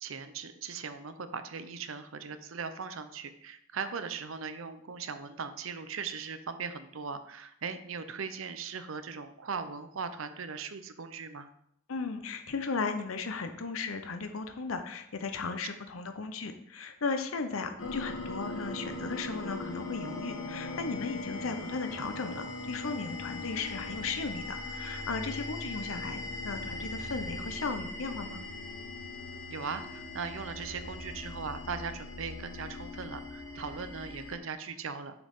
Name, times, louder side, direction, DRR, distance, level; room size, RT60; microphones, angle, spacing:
voice 1, 0.0-11.5 29.5-35.2, right 5 dB, 80° right, 10 dB, 0.7 m, -39 dB
voice 2, 11.9-28.4, left 4 dB, 90° left, 7 dB, 0.7 m, -36 dB
sound 1, 17.8-34.4, left 2 dB, 75° left, 1.4 m, -40 dB
7.1 x 6.5 x 3.6 m, 0.72 s
head